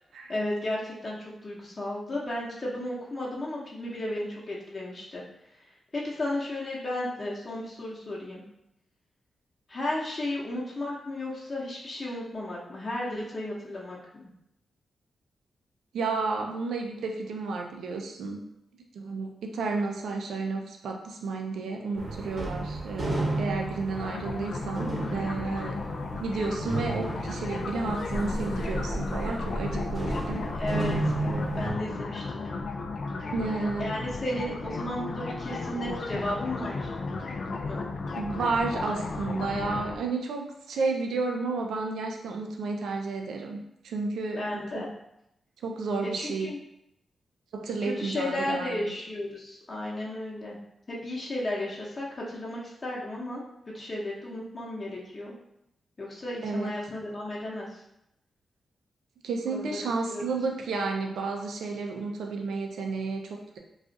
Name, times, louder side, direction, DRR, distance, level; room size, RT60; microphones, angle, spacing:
voice 1, 0.3-5.2 5.9-8.4 9.7-14.3 30.5-32.7 33.8-36.9 37.6-37.8 44.3-44.9 46.1-46.6 47.8-50.6 50.9-53.4 53.7-55.3 56.0-57.8 59.5-59.7 60.1-60.3, left 1 dB, 40° left, -5 dB, 0.8 m, -34 dB
voice 2, 15.9-18.4 18.9-19.3 19.5-25.8 26.2-30.4 33.3-34.0 38.2-44.4 44.7-44.8 45.6-46.5 47.5-48.9 56.4-56.7 59.2-63.6, right 3 dB, 80° right, 2 dB, 0.4 m, -31 dB
sound 1, 22.0-31.7, right 2 dB, 45° right, 1.0 m, -33 dB
sound 2, 23.9-39.9, left 3 dB, 60° left, 0.4 m, -34 dB
2.4 x 2.4 x 3.9 m, 0.82 s
supercardioid pair, 50°, 0 cm